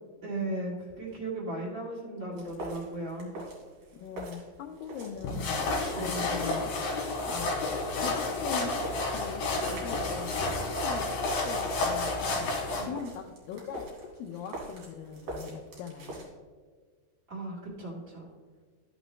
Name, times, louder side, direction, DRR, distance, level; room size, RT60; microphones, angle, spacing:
voice 1, 0.2-3.3 5.9-6.4 9.6-9.8 12.7-12.9 17.3-18.3, right 2 dB, 75° right, -6 dB, 0.6 m, -36 dB
sound 1, 2.3-16.3, right 1 dB, 50° right, 3.2 m, -45 dB
voice 2, 4.0-6.7 7.3-7.6 8.0-10.5 10.8-12.5 12.9-16.3, left 7 dB, 85° left, 2 dB, 2.0 m, -41 dB
sound 2, 5.2-12.9, left 2 dB, 65° left, 2.9 m, -31 dB
13.0 x 6.0 x 3.1 m, 1.5 s
omnidirectional pair, 4.7 m